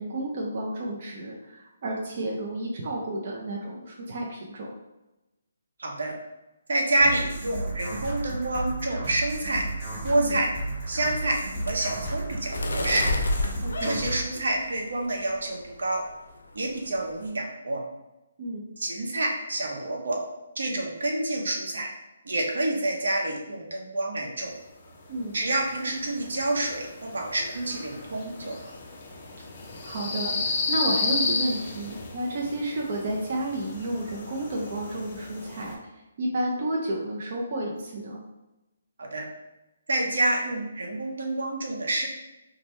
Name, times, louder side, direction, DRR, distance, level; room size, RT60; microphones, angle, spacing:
voice 1, 0.0-4.7 10.2-10.4 13.6-14.0 18.4-18.7 25.1-25.3 29.8-35.9 36.2-38.2, right 1 dB, 40° right, -3 dB, 0.5 m, -31 dB
voice 2, 5.8-6.1 6.7-9.6 10.0-10.5 10.9-11.4 11.7-13.1 13.8-16.0 16.5-17.8 18.8-20.2 20.6-21.9 22.2-24.6 25.3-28.5 39.0-39.3 39.9-42.1, right 2 dB, 75° right, 0 dB, 0.8 m, -28 dB
sound 1, 7.0-14.2, right 2 dB, 5° right, 1.3 m, -33 dB
sound 2, 10.5-14.9 15.4-15.8 16.1-16.4 16.6-17.3, left 2 dB, 80° left, 0.5 m, -32 dB
sound 3, 24.9-35.7, left 3 dB, 30° left, 0.5 m, -33 dB
2.8 x 2.1 x 3.2 m, 0.97 s
hypercardioid pair, 170°, 0 cm